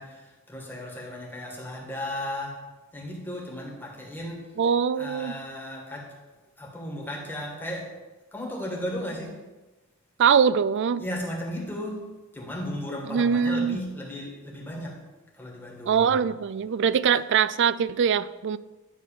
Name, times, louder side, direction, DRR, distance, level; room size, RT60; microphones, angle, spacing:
voice 1, 0.0-2.6 2.9-4.5 5.0-6.2 6.6-7.9 8.3-9.4 11.0-15.0 15.3-16.1, left 1 dB, 10° left, -2 dB, 2.0 m, -35 dB
voice 2, 4.6-5.3 10.2-11.0 13.1-13.8 15.9-18.6, right 7 dB, 55° right, 17 dB, 0.4 m, -22 dB
10.5 x 4.1 x 7.3 m, 1.2 s
head